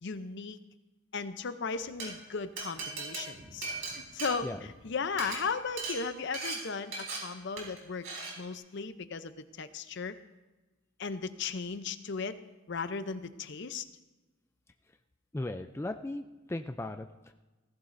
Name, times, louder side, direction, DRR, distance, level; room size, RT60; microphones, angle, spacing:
voice 1, 0.0-0.6 1.1-3.7 3.9-8.1 8.4-10.1 11.0-12.4 12.7-13.8, left 5 dB, 55° left, 11 dB, 0.6 m, -36 dB
Glass, 1.8-2.1 2.6-4.8 5.1-5.4 5.8-6.0 6.3-6.6 6.9-7.2 7.6-7.8 8.0-8.3, right 4 dB, 65° right, 4.4 m, -37 dB
voice 2, 15.3-17.1, left 1 dB, 10° left, 7 dB, 0.3 m, -36 dB
17.0 x 15.0 x 2.6 m, 1.2 s
head